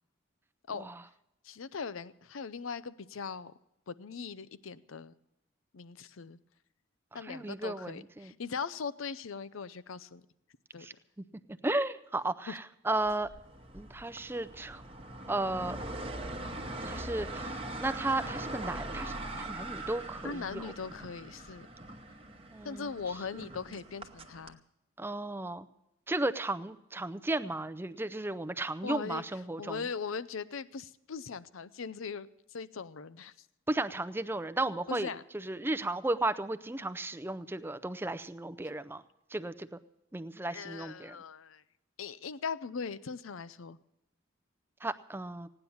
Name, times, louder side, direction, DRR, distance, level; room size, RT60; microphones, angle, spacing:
voice 1, 1.4-3.5 3.9-5.1 5.7-6.4 7.1-10.3 10.7-10.9 12.5-12.6 20.2-21.7 22.6-24.6 28.8-33.5 34.9-35.2 38.6-38.7 40.5-41.6 42.0-43.8, left 5 dB, 85° left, 16 dB, 0.6 m, -40 dB
voice 2, 7.3-8.3 10.8-10.9 11.6-12.6 12.9-13.3 13.7-14.8 15.3-15.8 16.8-20.6 22.5-22.9 25.0-25.7 26.1-29.8 33.7-35.1 35.3-39.0 39.3-39.7 40.1-41.2 44.8-45.5, right 2 dB, 10° right, 12 dB, 0.5 m, -34 dB
sound 1, 13.1-24.5, right 2 dB, 30° right, 1.1 m, -42 dB
17.0 x 9.8 x 7.0 m, 0.87 s
head